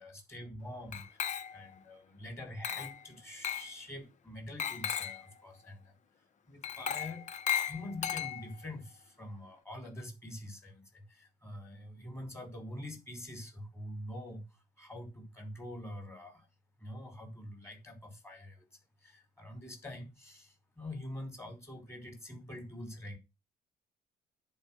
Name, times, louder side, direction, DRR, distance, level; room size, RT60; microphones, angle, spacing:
voice 1, 0.0-5.9 6.5-7.3 7.6-14.5 14.8-16.5 16.8-18.6 19.0-23.2, left 1 dB, 15° left, 5.2 m, -45 dB
Glass, 0.9-1.8 2.6-3.0 3.4-3.7 4.6-5.2 6.6-8.7, left 9 dB, 45° left, 1.0 m, -36 dB
10.5 x 5.0 x 7.8 m
cardioid pair, 110°, 17 cm